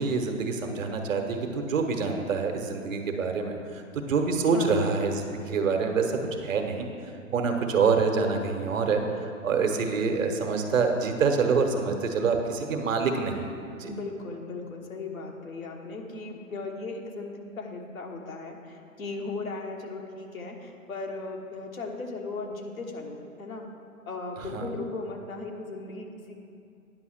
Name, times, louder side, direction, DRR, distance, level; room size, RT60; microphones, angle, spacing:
voice 1, 0.0-6.8 7.3-13.9 24.4-24.7, right 4 dB, 65° right, 4 dB, 1.3 m, -26 dB
voice 2, 4.5-4.9 13.9-23.7 24.1-26.4, left 3 dB, 75° left, 1 dB, 1.5 m, -37 dB
9.7 x 5.5 x 6.5 m, 2.5 s
figure-of-eight pair, 120°, 42 cm